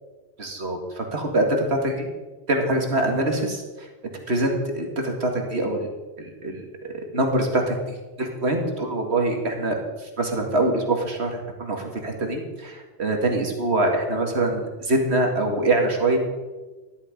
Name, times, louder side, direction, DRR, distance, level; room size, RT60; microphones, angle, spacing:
voice 1, 0.4-2.1 2.5-3.9 4.3-5.9 6.2-16.2, right 2 dB, 90° right, 3 dB, 2.3 m, -24 dB
14.0 x 11.5 x 5.2 m, 1.2 s
omnidirectional pair, 1.1 m